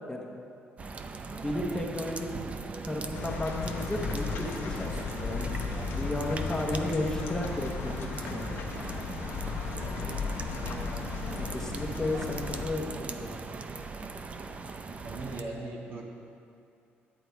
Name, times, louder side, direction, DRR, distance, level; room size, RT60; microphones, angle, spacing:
sound 1, 0.8-15.4, right 4 dB, 30° right, 0.6 m, -40 dB
voice 1, 1.3-2.3 2.9-5.5 5.9-8.5 11.4-13.3, left 1 dB, 10° left, 0 dB, 1.1 m, -34 dB
sound 2, 3.1-12.6, left 5 dB, 80° left, 1.0 m, -35 dB
voice 2, 10.5-10.8 15.0-16.0, right 2 dB, 65° right, -2 dB, 1.9 m, -40 dB
11.5 x 8.1 x 4.6 m, 2.5 s
cardioid pair, 110°, 4 cm